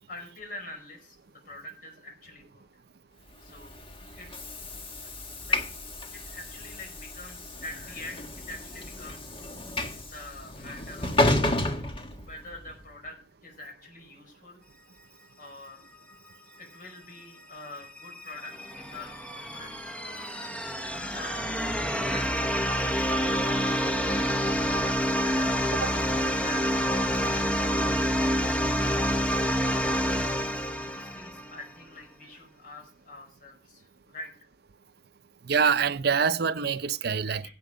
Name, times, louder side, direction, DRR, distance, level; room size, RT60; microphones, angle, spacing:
voice 1, 0.1-2.6 3.4-3.8 4.1-4.3 5.0-5.1 5.4-5.6 6.1-9.3 10.0-11.2 12.2-14.6 15.4-15.8 16.6-20.2 20.9-24.2 25.2-25.7 26.1-26.7 27.1-28.1 29.1-29.7 30.4-34.3 37.1-37.5, left 2 dB, 50° left, 5.2 m, -45 dB
Train / Sliding door, 3.5-12.8, left 2 dB, 30° left, 1.5 m, -31 dB
sound 1, 17.8-31.6, equal, 5° left, 1.1 m, -28 dB
voice 2, 35.4-37.5, right 6 dB, 60° right, 0.7 m, -25 dB
16.0 x 7.9 x 5.1 m
head